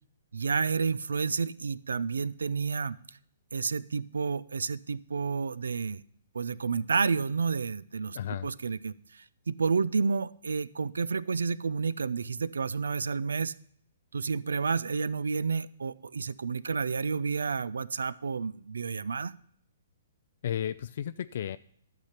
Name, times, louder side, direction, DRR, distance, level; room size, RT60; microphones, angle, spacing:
voice 1, 0.3-3.0 3.5-6.0 6.3-8.2 8.4-13.5 14.1-19.3, right 5 dB, 80° right, 20 dB, 0.4 m, -30 dB
voice 2, 8.1-8.5 20.4-21.6, left 10 dB, 60° left, 12 dB, 0.4 m, -33 dB
12.0 x 6.8 x 5.8 m, 0.65 s
hypercardioid pair, 130°, 0 cm